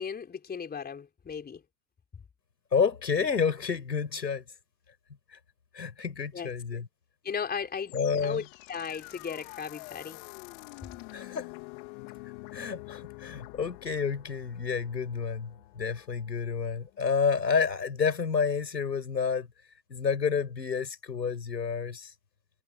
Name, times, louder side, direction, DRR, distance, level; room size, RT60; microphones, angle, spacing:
voice 1, 0.0-1.6 6.3-6.5 7.2-7.9 8.2-8.4 8.7-10.2, left 6 dB, 20° left, 4.1 m, -36 dB
voice 2, 2.7-4.4 5.3-5.4 5.7-6.9 7.9-8.4 11.1-11.5 12.5-19.5 19.9-22.1, left 6 dB, 90° left, 7.3 m, -29 dB
sound 1, 7.9-17.0, left 28 dB, 55° left, 3.7 m, -47 dB
hypercardioid pair, 95°, 49 cm